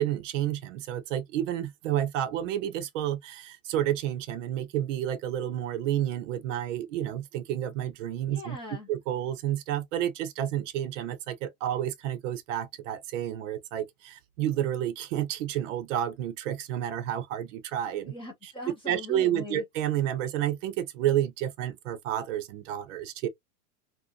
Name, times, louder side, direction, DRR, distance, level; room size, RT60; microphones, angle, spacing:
voice 1, 0.0-8.6 8.9-18.1 18.4-18.5 18.9-23.3, right 11 dB, 50° right, 0.6 m, -30 dB
voice 2, 8.3-8.9 18.0-19.6, left 3 dB, 10° left, 0.4 m, -40 dB
2.6 x 2.1 x 2.4 m
hypercardioid pair, 110°, 48 cm